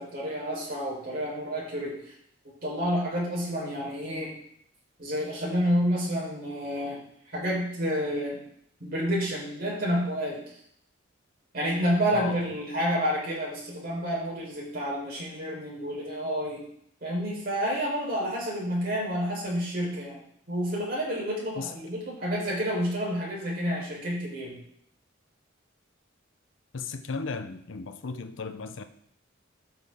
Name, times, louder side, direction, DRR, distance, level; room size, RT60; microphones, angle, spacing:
voice 1, 0.0-2.1 2.6-4.3 5.0-7.0 7.3-8.4 8.8-10.4 11.5-16.6 17.0-20.2 20.5-24.6, equal, 50° right, -5 dB, 4.0 m, -29 dB
voice 2, 12.1-12.4 21.6-21.7 26.7-28.8, left 4 dB, 75° left, 9 dB, 0.7 m, -35 dB
12.5 x 5.9 x 3.6 m, 0.68 s
head